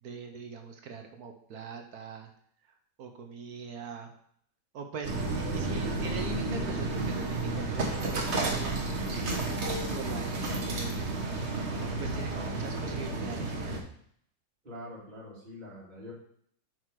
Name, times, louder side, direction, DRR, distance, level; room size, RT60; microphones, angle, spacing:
voice 1, 0.0-2.3 3.0-4.1 4.7-9.6 9.9-11.0 12.0-13.9, right 5 dB, 60° right, 4 dB, 1.2 m, -42 dB
sound 1, 5.0-13.8, right 2 dB, 40° right, 1.3 m, -31 dB
voice 2, 14.6-16.1, left 1 dB, 25° right, -6 dB, 2.0 m, -44 dB
6.1 x 6.0 x 4.7 m, 0.65 s
omnidirectional pair, 2.2 m